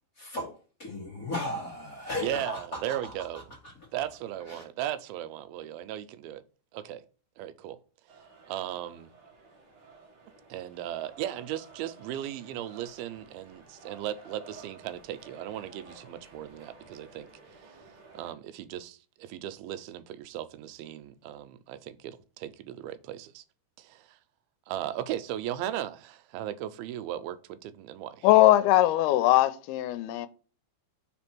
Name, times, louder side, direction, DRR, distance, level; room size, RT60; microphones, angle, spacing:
voice 1, 0.1-4.0 4.4-4.7, left 1 dB, 40° left, 1.3 m, -37 dB
voice 2, 2.2-2.5 2.8-3.4 3.9-6.4 6.7-7.0 7.4-7.8 8.2-9.1 10.5-17.3 17.5-17.8 18.1-23.4 23.8-24.2 24.7-28.3, right 12 dB, 80° right, 2.4 m, -37 dB
sound 1, 8.1-18.3, right 4 dB, 45° right, 1.9 m, -53 dB
voice 3, 28.2-30.3, left 15 dB, 85° left, 2.6 m, -21 dB
5.0 x 4.2 x 6.0 m
omnidirectional pair, 4.5 m